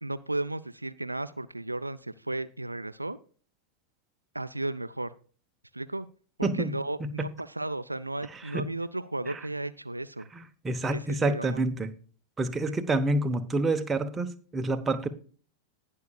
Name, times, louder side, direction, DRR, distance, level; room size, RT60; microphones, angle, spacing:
voice 1, 0.0-3.2 4.3-5.1 5.7-6.1 6.4-10.3 10.9-11.6, right 2 dB, 85° right, 0.4 m, -34 dB
voice 2, 6.4-6.7 7.0-7.3 8.5-8.7 9.3-9.4 10.3-11.9 12.4-15.1, right 2 dB, 15° right, 1.0 m, -28 dB
19.0 x 6.6 x 2.4 m
figure-of-eight pair, 90°, 0 cm